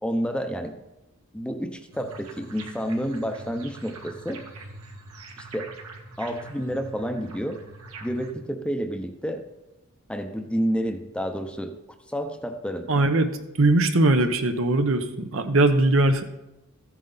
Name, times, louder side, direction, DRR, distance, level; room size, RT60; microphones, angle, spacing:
voice 1, 0.0-0.8 1.3-4.4 5.4-5.7 6.2-7.6 8.0-9.4 10.1-11.7 12.1-12.9, equal, 5° left, 6 dB, 0.7 m, -29 dB
sound 1, 1.9-8.3, right 2 dB, 85° right, 1.8 m, -43 dB
voice 2, 12.9-13.3 13.6-16.2, right 2 dB, 65° right, 8 dB, 0.9 m, -20 dB
14.0 x 9.3 x 4.0 m, 0.96 s
head